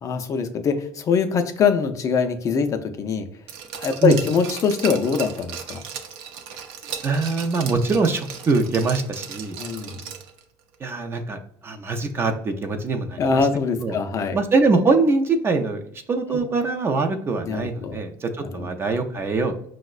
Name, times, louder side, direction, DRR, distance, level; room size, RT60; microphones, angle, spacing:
voice 1, 0.0-3.3 3.7-5.8 9.6-10.0 13.2-14.4 17.5-18.0 18.5-18.7, left 5 dB, 40° left, 7 dB, 0.4 m, -23 dB
Glass, 3.5-10.4 10.7-10.8, right 7 dB, 80° right, 0.5 m, -36 dB
voice 2, 7.0-9.6 10.8-13.5 13.8-14.0 14.3-19.5, right 3 dB, 30° right, 5 dB, 0.4 m, -23 dB
5.1 x 2.0 x 2.3 m, 0.68 s
cardioid pair, 120°, 9 cm